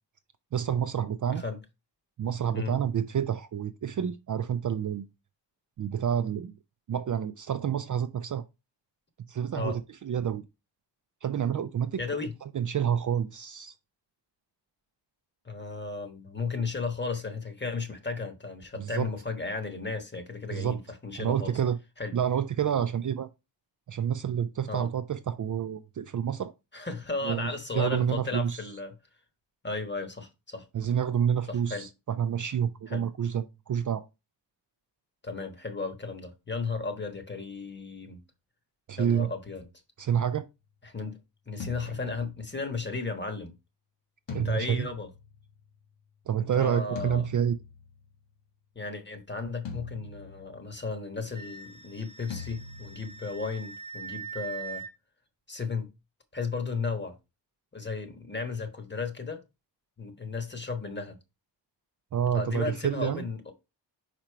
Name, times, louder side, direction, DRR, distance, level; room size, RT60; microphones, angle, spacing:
voice 1, 0.5-1.4 2.2-5.1 5.8-6.5 6.9-8.4 9.3-10.4 11.2-12.2 12.5-13.7 18.8-19.1 20.5-20.8 21.2-21.8 22.1-23.3 23.9-26.5 27.2-27.5 27.7-28.6 30.7-34.0 38.9-39.3 40.0-40.5 44.3-44.9 46.3-47.6 62.1-63.3, right 8 dB, 45° right, 0.4 m, -28 dB
voice 2, 12.0-12.3 15.4-21.6 22.0-22.2 24.7-24.9 26.7-28.9 29.6-30.7 31.5-31.9 32.9-33.1 35.2-38.2 39.0-39.7 40.8-41.2 41.5-43.5 44.3-45.1 46.4-47.3 48.7-54.8 55.5-55.9 56.3-57.1 57.7-59.4 60.0-61.2 62.3-63.5, left 4 dB, 25° left, 1.2 m, -34 dB
sound 1, 41.6-42.8 44.3-45.8 46.9-48.1 49.6-50.9 52.3-53.4, left 4 dB, 85° left, 1.7 m, -42 dB
Wind instrument woodwind instrument, 51.3-54.9, right 5 dB, 15° right, 0.8 m, -42 dB
5.1 x 4.4 x 4.5 m
wide cardioid pair, 110°, 43 cm